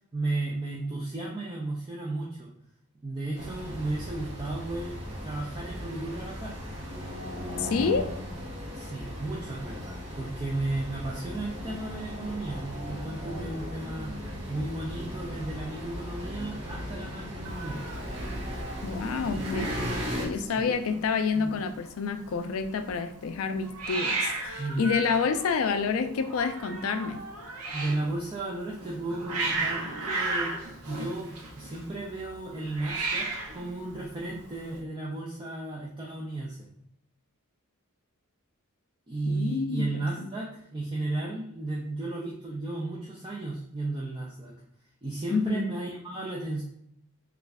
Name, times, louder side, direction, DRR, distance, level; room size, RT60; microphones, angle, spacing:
voice 1, 0.1-2.5 3.0-6.6 8.7-14.1 14.5-17.8 20.3-20.7 21.3-21.5 24.6-24.9 27.7-30.5 30.9-36.7 39.1-44.5 45.0-46.6, right 2 dB, 20° right, -4 dB, 0.4 m, -34 dB
sound 1, 3.3-20.3, equal, 50° right, 1.0 m, -37 dB
voice 2, 7.6-8.1 18.8-19.7 20.2-27.2 39.3-40.3 45.3-45.7, left 5 dB, 65° left, 8 dB, 0.4 m, -28 dB
Hiss, 17.4-34.8, right 3 dB, 90° right, 0.7 m, -36 dB
3.1 x 2.4 x 3.5 m, 0.73 s
head